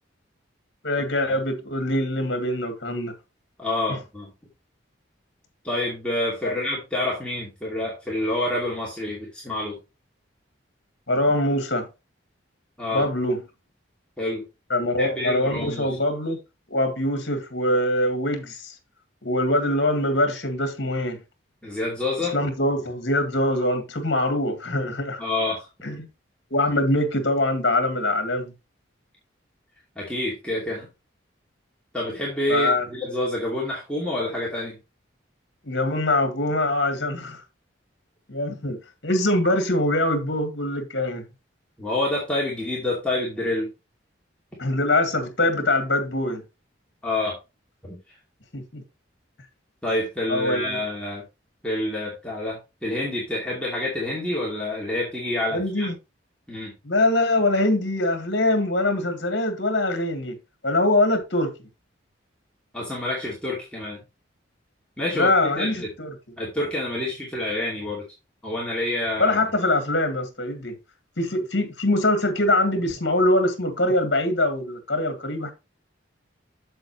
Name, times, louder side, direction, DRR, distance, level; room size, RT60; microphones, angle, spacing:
voice 1, 0.8-3.2 3.9-4.0 6.4-6.5 11.1-11.9 12.9-13.4 14.7-16.4 16.7-18.8 19.2-21.2 22.3-25.2 25.8-26.1 26.5-28.5 32.5-32.8 35.6-37.4 38.3-41.3 44.6-46.4 48.5-48.8 50.3-50.8 55.5-55.9 56.8-60.4 60.6-61.5 65.1-66.1 69.2-70.8 71.2-75.5, left 1 dB, 60° left, 1.9 m, -23 dB
voice 2, 3.6-4.3 5.6-9.8 12.8-13.0 14.2-14.4 15.0-15.9 21.6-22.4 25.2-25.7 30.0-30.9 31.9-34.8 41.8-43.7 47.0-47.3 47.8-48.0 49.8-51.2 51.6-55.9 56.5-56.7 62.7-64.0 65.0-65.9 66.4-68.0 68.4-69.4, left 1 dB, 5° left, 2.5 m, -28 dB
7.8 x 7.1 x 3.1 m
head